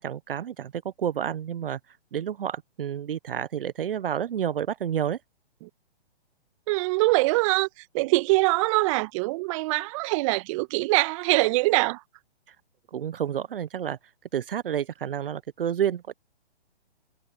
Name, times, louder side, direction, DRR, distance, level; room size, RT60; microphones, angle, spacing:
voice 1, 0.0-5.2 12.5-12.6 12.9-14.0 14.3-16.1, right 9 dB, 60° right, 1.1 m, -30 dB
voice 2, 6.7-7.7 7.9-12.0, right 23 dB, 30° right, 1.5 m, -23 dB
figure-of-eight pair, 130°, 32 cm